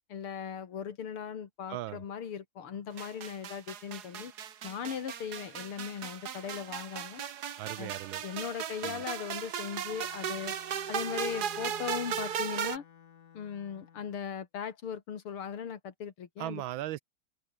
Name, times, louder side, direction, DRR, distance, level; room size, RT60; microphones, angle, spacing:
voice 1, 0.1-4.3 4.6-7.2 7.8-7.9 8.2-10.6 10.9-12.8 13.3-16.6, left 7 dB, 75° left, 2.8 m, -38 dB
voice 2, 1.7-2.0 7.6-8.2 8.8-9.0 16.4-17.0, right 14 dB, 75° right, 1.3 m, -38 dB
sound 1, 3.0-12.8, right 9 dB, 50° right, 1.5 m, -37 dB
Bowed string instrument, 9.8-14.2, left 8 dB, 45° left, 1.4 m, -55 dB
open air
omnidirectional pair, 2.4 m